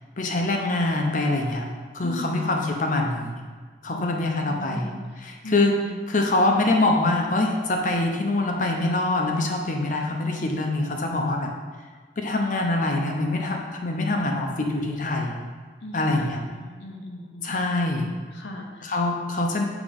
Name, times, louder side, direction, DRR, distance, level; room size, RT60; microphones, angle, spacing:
voice 1, 0.2-1.7 1.9-3.4 3.8-4.9 5.2-5.8 6.1-11.5 12.2-15.4 15.9-16.4 17.4-18.1 18.8-19.6, left 2 dB, 45° left, 2 dB, 0.8 m, -24 dB
voice 2, 2.0-2.5 3.9-5.0 5.4-5.5 5.8-6.1 15.8-17.6 18.3-18.9, left 1 dB, 80° left, 1 dB, 0.9 m, -38 dB
7.1 x 3.0 x 5.1 m, 1.5 s
head